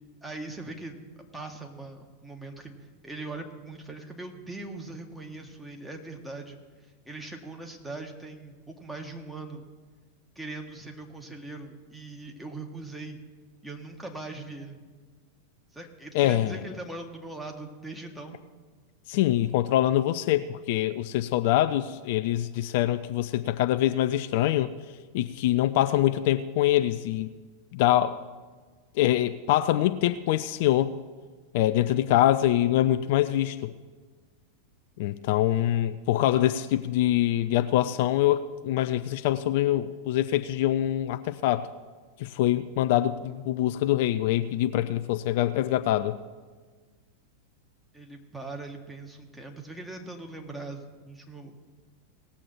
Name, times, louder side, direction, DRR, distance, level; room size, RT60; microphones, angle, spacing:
voice 1, 0.2-1.0 1.3-2.7 3.0-9.6 10.3-13.2 13.6-14.8 15.7-18.4 47.9-51.6, right 2 dB, 5° right, 2 dB, 1.5 m, -41 dB
voice 2, 16.1-16.6 19.1-24.7 25.1-27.3 27.7-28.2 29.0-30.9 31.5-33.7 35.0-41.7 42.2-46.2, left 13 dB, 50° left, 11 dB, 0.4 m, -24 dB
18.5 x 7.4 x 4.4 m, 1.4 s
figure-of-eight pair, 90°, 0 cm